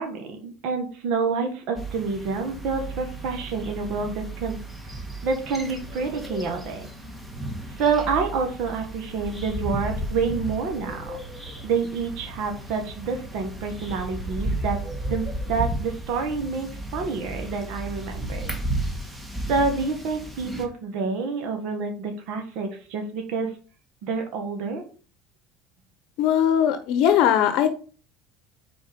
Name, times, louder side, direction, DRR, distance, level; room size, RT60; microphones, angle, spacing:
voice 1, 0.0-4.6 5.2-6.9 7.8-11.0 11.6-14.8 15.1-18.5 19.5-23.5 24.0-24.8, right 4 dB, 65° right, 3 dB, 1.5 m, -28 dB
sound 1, 1.8-20.7, right 1 dB, 10° right, 1.5 m, -34 dB
voice 2, 26.2-27.8, left 9 dB, 65° left, 9 dB, 0.8 m, -20 dB
4.9 x 4.3 x 5.7 m, 0.38 s
supercardioid pair, 95°, 0 cm